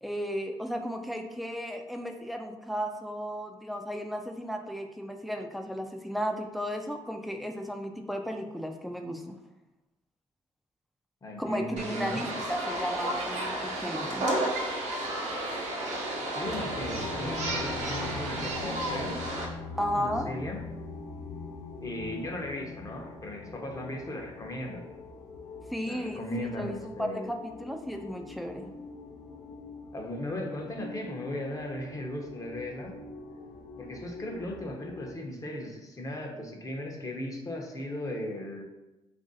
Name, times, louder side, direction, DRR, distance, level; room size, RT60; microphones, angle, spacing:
voice 1, 0.0-9.4 11.4-14.3 19.8-20.3 25.7-28.7, equal, ahead, 4 dB, 0.4 m, -34 dB
voice 2, 11.2-12.3 16.3-19.2 20.0-20.6 21.8-24.9 25.9-27.3 29.9-32.9 33.8-38.6, left 1 dB, 30° left, 1 dB, 0.8 m, -37 dB
sound 1, 11.8-19.5, right 1 dB, 75° right, 0.8 m, -32 dB
sound 2, 16.4-35.1, left 4 dB, 80° left, 0.5 m, -43 dB
2.9 x 2.6 x 4.0 m, 0.99 s
cardioid pair, 85°, 12 cm